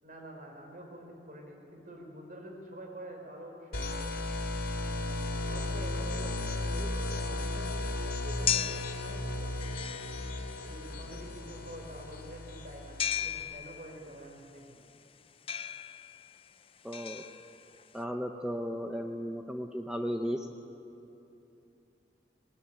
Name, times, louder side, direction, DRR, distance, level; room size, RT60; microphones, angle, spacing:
voice 1, 0.0-4.1 4.9-7.7 8.2-10.3 10.7-14.8, right 1 dB, 50° right, 2 dB, 4.5 m, -47 dB
sound 1, 3.7-13.4, left 2 dB, 60° left, 3.0 m, -35 dB
sound 2, 6.1-18.0, left 9 dB, 30° left, 0.6 m, -38 dB
voice 2, 16.8-17.2 17.9-20.5, equal, 5° right, 3 dB, 0.9 m, -35 dB
26.0 x 19.0 x 9.2 m, 2.9 s
head